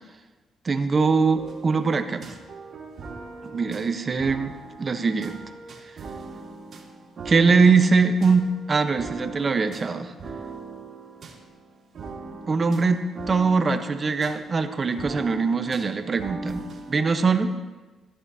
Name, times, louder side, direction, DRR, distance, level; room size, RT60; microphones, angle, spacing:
voice 1, 0.6-2.2 3.5-4.5 4.8-5.4 7.2-10.1 12.5-17.5, right 4 dB, 35° right, 7 dB, 0.9 m, -22 dB
sound 1, 1.3-16.9, right 3 dB, 55° right, 2.3 m, -40 dB
15.5 x 11.0 x 2.8 m, 1.2 s
cardioid pair, 90°, 0 cm